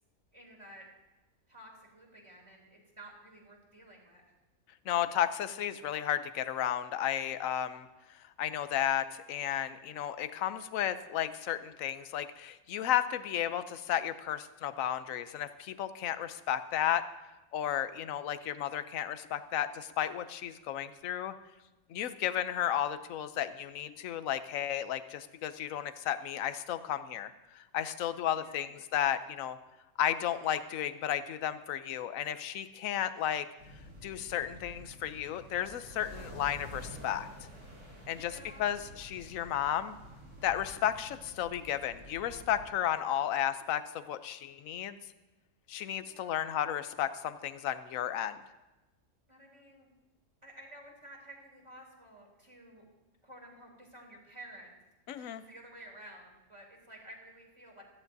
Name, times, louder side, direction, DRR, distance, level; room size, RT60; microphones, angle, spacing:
voice 1, 0.3-0.9 1.5-4.2 28.3-28.7 38.1-38.7 46.0-46.4 49.3-49.9 50.4-52.8 53.2-54.7 55.1-57.8, right 1 dB, 20° right, -2 dB, 3.2 m, -52 dB
voice 2, 4.9-7.9 8.4-17.0 17.5-21.3 21.9-29.6 30.0-33.5 34.0-37.3 38.1-40.0 40.4-45.0 45.7-48.4 55.1-55.4, left 10 dB, 80° left, 12 dB, 1.1 m, -33 dB
sound 1, 33.6-42.7, right 1 dB, 60° right, 4.7 m, -50 dB
17.0 x 14.0 x 2.7 m, 1.1 s
omnidirectional pair, 1.4 m